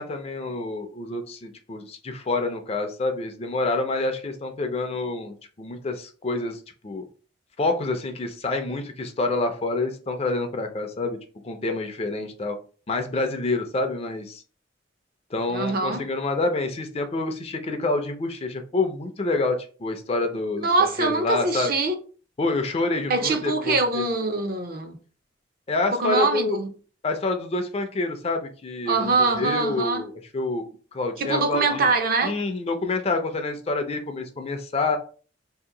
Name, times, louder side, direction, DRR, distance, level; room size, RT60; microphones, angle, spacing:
voice 1, 0.0-7.0 7.6-11.2 11.4-12.6 12.9-14.4 15.3-21.7 22.4-24.0 25.7-26.6 27.0-30.6 30.9-31.9 32.2-35.0, left 2 dB, 30° left, 0.4 m, -27 dB
voice 2, 15.5-16.0 20.6-21.9 23.1-25.0 25.9-26.7 28.9-30.0 31.2-32.4, right 3 dB, 50° right, 0.5 m, -23 dB
2.8 x 2.5 x 3.7 m
head